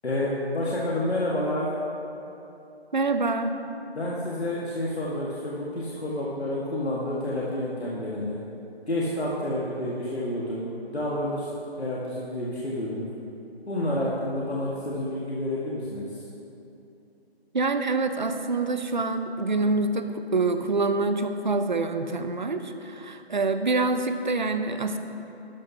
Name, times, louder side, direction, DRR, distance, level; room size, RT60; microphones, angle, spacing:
voice 1, 0.0-1.7 4.0-8.4 8.9-11.5 11.8-13.1 13.7-16.2, left 1 dB, 85° left, -6 dB, 1.8 m, -29 dB
voice 2, 2.9-3.5 17.5-25.0, right 3 dB, 45° right, 8 dB, 0.7 m, -26 dB
12.5 x 11.5 x 2.8 m, 2.9 s
figure-of-eight pair, 160°, 32 cm